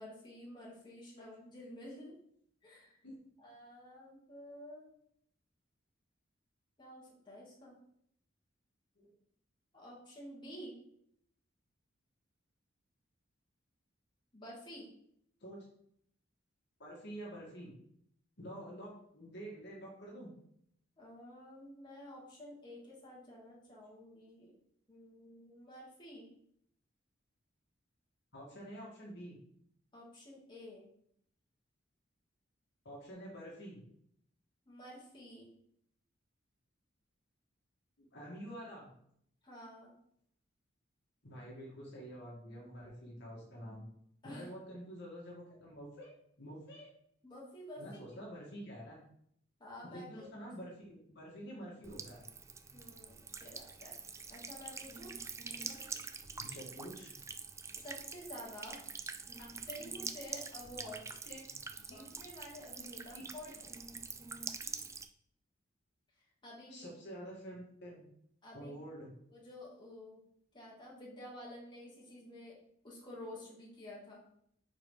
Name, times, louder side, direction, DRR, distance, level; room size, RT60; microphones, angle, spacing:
voice 1, 0.0-2.1 2.6-3.0 3.4-4.9 6.8-7.7 9.7-10.7 14.3-14.9 21.0-24.5 24.9-26.3 29.9-30.9 34.7-35.5 39.4-39.9 44.2-44.7 47.2-47.8 49.6-50.5 52.7-53.9 54.3-55.1 57.7-58.8 59.7-61.2 61.8-63.7 66.2-66.9 68.4-68.8 69.3-70.2 70.5-72.6 72.8-74.2, left 1 dB, 25° left, -5 dB, 2.5 m, -50 dB
voice 2, 16.8-17.7 18.4-20.3 28.3-29.4 32.8-33.8 38.0-38.9 41.2-43.9 44.2-46.9 47.8-49.0 49.8-52.2 55.5-55.9 56.2-57.1 59.4-59.6 61.3-61.4 61.9-62.0 63.1-63.5 64.3-64.4 66.7-68.0 68.5-69.1, equal, 60° left, -4 dB, 2.1 m, -48 dB
Buzz / Water tap faucet / Trickle dribble, 51.8-65.0, right 4 dB, 15° right, 0.4 m, -45 dB
5.1 x 5.0 x 5.5 m, 0.69 s
head